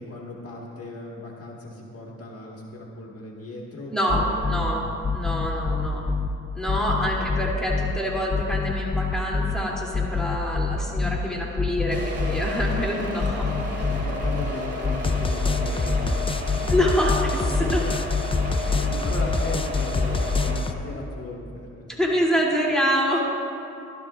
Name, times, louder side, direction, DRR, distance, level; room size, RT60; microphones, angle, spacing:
voice 1, 0.0-4.9 5.3-6.1 6.7-7.3 13.5-17.1 17.6-18.1 18.6-22.1, left 2 dB, 50° left, -2 dB, 1.7 m, -38 dB
voice 2, 3.9-4.2 4.5-4.9 5.1-6.0 6.5-13.5 16.7-17.8 21.9-23.3, equal, ahead, -4 dB, 2.8 m, -26 dB
sound 1, 4.1-4.7 5.0-6.3 6.7-7.9 8.3-9.6 9.9-11.2 11.6-12.8 13.2-14.5 14.8-20.7, left 4 dB, 20° left, 0.4 m, -25 dB
sound 2, 11.9-20.5, equal, 35° right, 2.9 m, -33 dB
15.5 x 12.5 x 2.5 m, 2.5 s
cardioid pair, 65°, 30 cm